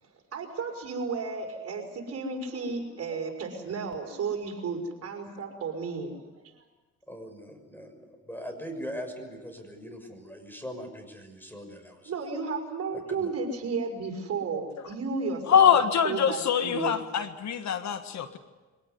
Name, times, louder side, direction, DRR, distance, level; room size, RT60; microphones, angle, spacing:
voice 1, 0.0-6.3 12.1-17.0, right 4 dB, 55° right, 2 dB, 5.9 m, -33 dB
voice 2, 7.1-12.1 12.9-13.3, equal, 5° left, 6 dB, 6.3 m, -41 dB
voice 3, 15.5-18.4, left 8 dB, 65° left, 9 dB, 1.7 m, -23 dB
24.5 x 18.0 x 9.7 m, 1.2 s
cardioid pair, 90°, 30 cm